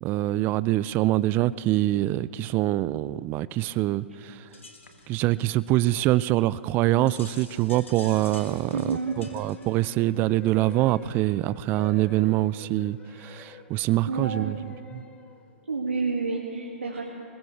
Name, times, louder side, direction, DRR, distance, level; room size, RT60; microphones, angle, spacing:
voice 1, 0.0-4.4 5.1-14.6 14.9-15.0, right 15 dB, 30° right, 18 dB, 0.4 m, -25 dB
sound 1, 4.5-11.4, left 3 dB, 90° left, 2.0 m, -50 dB
voice 2, 8.7-9.2 14.1-14.6 15.7-17.0, right 4 dB, 90° right, -3 dB, 2.1 m, -29 dB
sound 2, 9.0-15.6, left 6 dB, 20° left, 0.9 m, -49 dB
21.5 x 20.5 x 3.3 m, 2.7 s
hypercardioid pair, 120°, 7 cm